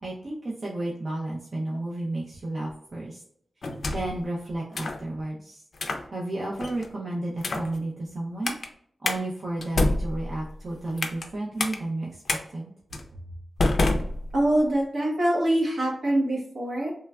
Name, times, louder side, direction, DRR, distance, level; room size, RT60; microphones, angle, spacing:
voice 1, 0.0-3.2 3.9-5.6 6.1-8.5 9.0-12.7, right 2 dB, 50° right, -4 dB, 0.5 m, -32 dB
sound 1, 3.6-4.2 4.7-5.0 5.7-6.1 6.6-6.9 7.4-7.7 8.4-8.7 9.0-9.2 9.6-11.3 11.6-11.8 12.3-12.4 12.9-13.1 13.6-14.7, left 2 dB, 60° left, 0.4 m, -27 dB
voice 2, 14.3-16.9, right 1 dB, 70° right, -3 dB, 1.0 m, -24 dB
3.1 x 2.2 x 2.3 m, 0.65 s
wide cardioid pair, 95°, 0 cm